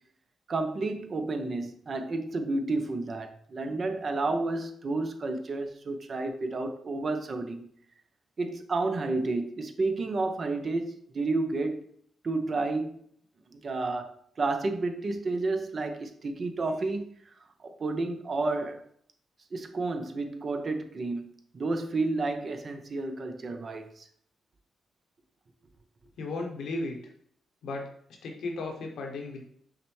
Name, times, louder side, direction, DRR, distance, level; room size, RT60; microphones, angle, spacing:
voice 1, 0.5-7.7 8.4-11.8 12.2-13.0 13.5-14.1 14.4-17.0 17.6-18.8 19.5-24.1, right 3 dB, 50° right, 0.5 m, -31 dB
voice 2, 26.2-27.0 27.6-27.9 28.2-29.4, left 2 dB, 80° left, 0.9 m, -35 dB
5.6 x 2.1 x 3.1 m
supercardioid pair, 55°, 0 cm